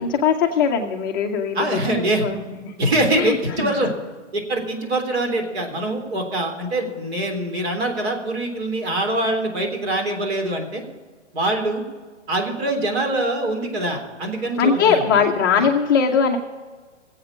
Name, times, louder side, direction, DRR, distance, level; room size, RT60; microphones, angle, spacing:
voice 1, 0.0-1.6 1.9-2.7 3.1-3.7 14.6-16.4, left 6 dB, 20° left, 1 dB, 0.5 m, -20 dB
voice 2, 1.5-2.3 2.8-3.9 4.3-10.8 11.3-11.8 12.3-15.2 15.6-15.7, right 1 dB, 60° right, 3 dB, 3.5 m, -24 dB
21.0 x 8.0 x 5.0 m, 1.4 s
hypercardioid pair, 145°, 36 cm